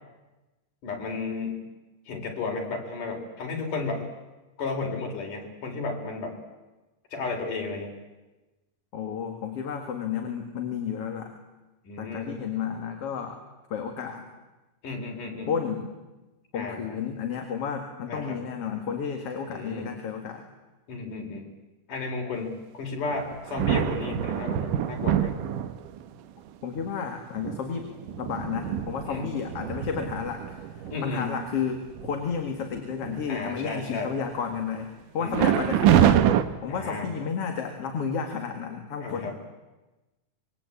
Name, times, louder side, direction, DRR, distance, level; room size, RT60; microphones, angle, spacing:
voice 1, 0.8-1.6 2.1-4.0 4.6-6.4 7.1-8.0 11.8-12.4 14.8-15.5 16.5-17.0 18.1-18.4 19.5-20.0 20.9-21.5 21.9-25.4 29.1-29.3 30.9-31.3 33.3-34.1 35.2-35.6 36.7-37.1 39.0-39.4, left 3 dB, 75° left, 2 dB, 5.4 m, -33 dB
voice 2, 8.9-11.4 12.0-13.4 13.7-14.2 15.5-15.9 16.5-20.4 26.6-27.9 28.2-36.2 36.6-39.3, left 6 dB, 50° left, 4 dB, 2.7 m, -32 dB
sound 1, 23.1-26.1 26.8-26.9 27.4-31.0 31.5-31.6 32.0-32.4 32.7-33.5 35.3-36.4, right 10 dB, 80° right, 2.6 m, -25 dB
26.0 x 22.5 x 8.6 m, 1.1 s
omnidirectional pair, 3.6 m